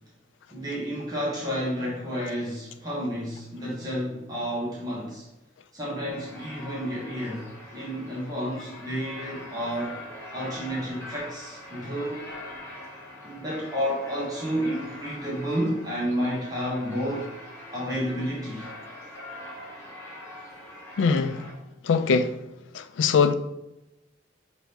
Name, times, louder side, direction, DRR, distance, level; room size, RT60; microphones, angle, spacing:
voice 1, 0.5-5.3 5.7-10.0 10.3-12.3 13.2-17.3 17.7-18.7, equal, 20° right, 0.9 m, -31 dB
sound 1, 6.1-21.5, left 1 dB, 15° left, 1.6 m, -43 dB
voice 2, 21.0-21.4 21.8-22.4 22.7-23.3, left 5 dB, 75° left, 0.3 m, -22 dB
5.8 x 2.6 x 3.4 m
head